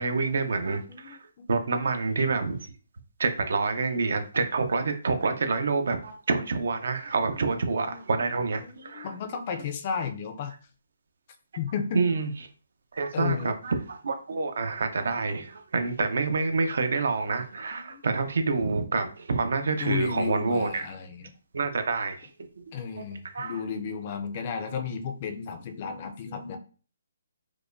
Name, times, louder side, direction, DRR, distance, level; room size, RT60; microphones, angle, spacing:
voice 1, 0.0-2.7 3.2-9.1 11.9-12.3 12.9-20.9 21.5-22.3 23.3-23.6, right 4 dB, 65° right, 0.6 m, -27 dB
voice 2, 0.6-1.8 7.6-8.0 8.6-10.5 11.6-12.0 13.1-13.5 17.8-18.0 19.8-21.3 22.7-26.6, left 6 dB, 30° left, 0.4 m, -34 dB
4.7 x 2.2 x 2.5 m
hypercardioid pair, 165°, 0 cm